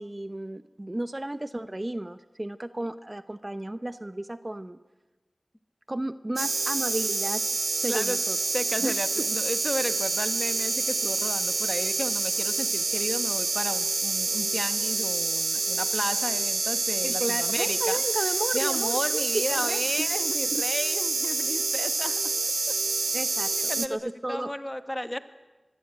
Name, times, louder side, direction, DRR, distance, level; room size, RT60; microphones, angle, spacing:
voice 1, 0.0-4.8 5.9-7.4 7.8-8.4 8.8-9.3 17.0-20.1 20.5-20.6 23.1-24.5, right 1 dB, 30° right, 12 dB, 0.9 m, -33 dB
sound 1, 6.4-23.9, right 3 dB, 90° right, 1.3 m, -27 dB
voice 2, 8.5-18.0 18.5-22.8 23.5-25.2, left 1 dB, 15° left, 10 dB, 1.7 m, -34 dB
25.5 x 22.0 x 9.1 m, 1.1 s
wide cardioid pair, 50°, 0 cm